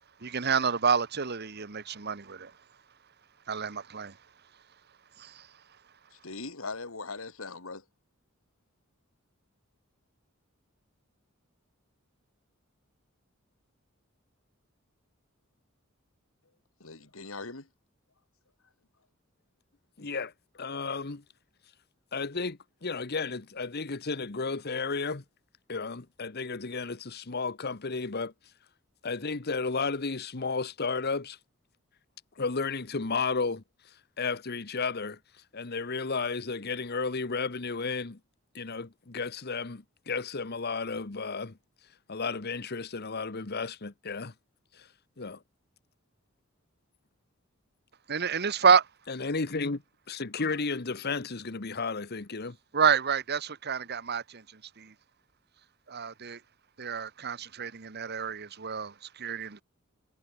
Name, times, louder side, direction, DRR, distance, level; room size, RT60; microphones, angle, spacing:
voice 1, 0.2-2.5 3.5-4.2 5.2-5.5 48.1-48.9 52.7-54.9 55.9-56.4 56.8-59.6, right 6 dB, 50° right, 1.3 m, -28 dB
voice 2, 6.1-7.8 16.8-17.7, left 3 dB, 75° left, 2.4 m, -40 dB
voice 3, 20.0-20.3 20.6-21.2 22.1-25.2 25.7-28.3 29.0-31.4 32.4-33.6 34.2-35.2 35.5-38.2 38.5-41.5 42.1-44.3 44.7-44.9 45.2-45.4 49.1-49.8 50.1-52.6, left 4 dB, 50° left, 1.2 m, -33 dB
head